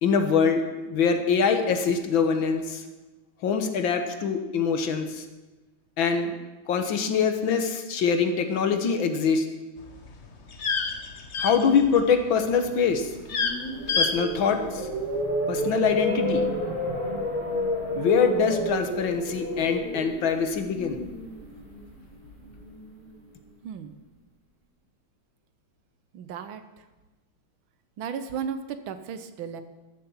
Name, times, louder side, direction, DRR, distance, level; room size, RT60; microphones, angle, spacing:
voice 1, 0.0-2.8 3.4-5.2 6.0-6.3 6.7-9.5 11.4-13.1 14.0-14.8 15.5-16.4 18.0-21.0, left 6 dB, 70° left, 6 dB, 1.8 m, -24 dB
sound 1, 9.8-12.2 12.5-12.9 13.2-13.5 13.9-14.1 14.4-14.5, left 5 dB, 45° left, 1.1 m, -27 dB
sound 2, 13.0-23.1, equal, 25° right, 2.9 m, -30 dB
voice 2, 23.6-23.9 26.1-26.8 28.0-29.6, right 7 dB, 75° right, 10 dB, 1.6 m, -35 dB
12.5 x 7.6 x 7.2 m, 1.2 s
omnidirectional pair, 2.3 m